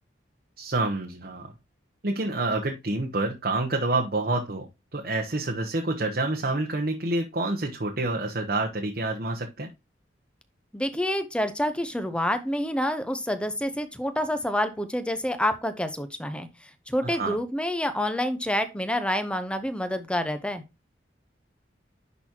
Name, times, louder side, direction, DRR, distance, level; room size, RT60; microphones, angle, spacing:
voice 1, 0.6-1.5 2.0-9.7 17.0-17.4, right 2 dB, 50° right, 2 dB, 0.9 m, -28 dB
voice 2, 10.7-16.5 16.9-20.6, left 1 dB, 5° left, 9 dB, 0.8 m, -28 dB
10.5 x 4.1 x 2.9 m, 0.25 s
head